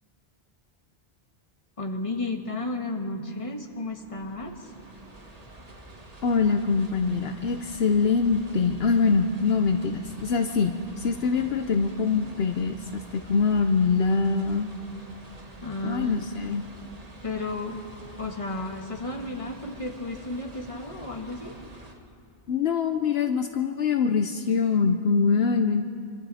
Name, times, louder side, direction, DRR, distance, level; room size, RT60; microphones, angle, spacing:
voice 1, 1.8-4.7 15.6-16.2 17.2-17.8 18.2-21.6, left 2 dB, 30° left, 2 dB, 1.7 m, -33 dB
sound 1, 3.6-21.9, right 1 dB, 35° right, 1.7 m, -47 dB
voice 2, 6.2-14.7 15.8-16.6 22.5-25.8, left 5 dB, 70° left, 6 dB, 1.0 m, -24 dB
25.5 x 25.0 x 4.2 m, 2.5 s
omnidirectional pair, 1.1 m